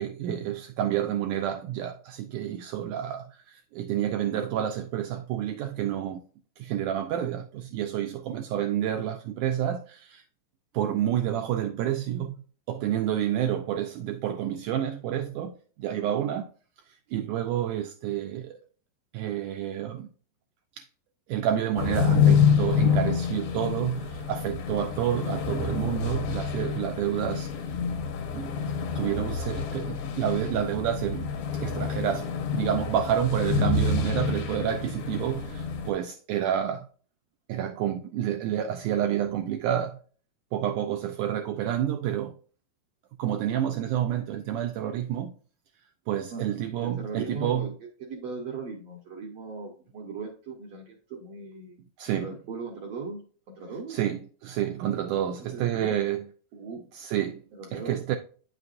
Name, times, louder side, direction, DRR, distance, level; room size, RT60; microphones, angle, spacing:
voice 1, 0.0-6.2 6.6-10.2 10.7-16.5 16.9-18.6 19.1-20.1 20.8-20.9 21.3-27.5 28.3-28.5 29.0-36.9 37.5-40.0 40.5-42.4 43.2-45.3 46.1-47.7 52.0-52.3 53.9-56.2 56.9-57.4 57.7-58.2, right 10 dB, 85° right, 1.8 m, -29 dB
sound 1, 21.8-35.9, left 6 dB, 90° left, 2.9 m, -27 dB
voice 2, 46.3-47.7 48.0-51.8 52.2-54.0 55.4-56.0 56.5-56.8 57.5-57.9, right 4 dB, 65° right, 1.6 m, -39 dB
9.3 x 5.8 x 2.5 m
omnidirectional pair, 4.1 m